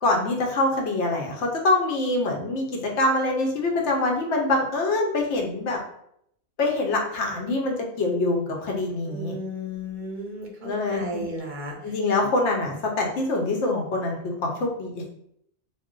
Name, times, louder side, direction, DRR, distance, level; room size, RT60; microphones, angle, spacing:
voice 1, 0.0-5.8 6.6-9.3 10.6-11.3 11.8-15.1, left 2 dB, 85° left, 0 dB, 1.0 m, -25 dB
voice 2, 9.1-11.9, equal, 55° right, 0 dB, 0.6 m, -34 dB
2.5 x 2.1 x 3.6 m, 0.73 s
omnidirectional pair, 1.2 m